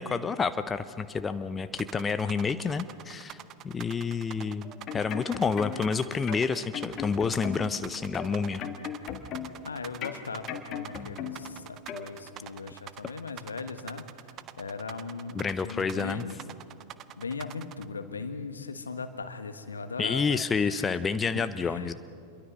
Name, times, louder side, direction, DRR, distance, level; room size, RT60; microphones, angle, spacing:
voice 1, 0.0-3.4 3.6-8.6 15.3-16.2 20.0-21.9, left 5 dB, 15° left, 12 dB, 0.7 m, -29 dB
sound 1, 1.8-17.9, right 12 dB, 35° right, 0.7 m, -45 dB
sound 2, 4.6-5.9 6.3-7.8 8.1-9.7 10.0-11.5 11.9-12.1, left 9 dB, 35° left, 1.7 m, -37 dB
voice 2, 9.6-16.3 17.2-20.9 21.3-21.9, left 4 dB, 75° left, 10 dB, 1.3 m, -39 dB
27.0 x 22.5 x 5.5 m, 2.5 s
figure-of-eight pair, 90°, 0 cm